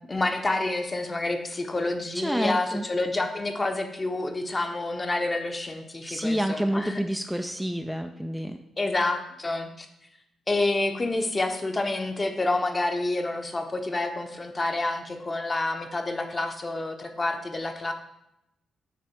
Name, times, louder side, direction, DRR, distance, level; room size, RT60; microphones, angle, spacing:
voice 1, 0.1-7.0 8.8-9.9 10.5-17.9, left 2 dB, 30° left, 5 dB, 0.9 m, -28 dB
voice 2, 2.1-2.9 6.1-8.6, equal, 5° right, 5 dB, 0.4 m, -28 dB
5.9 x 3.4 x 5.8 m, 0.83 s
hypercardioid pair, 45°, 0 cm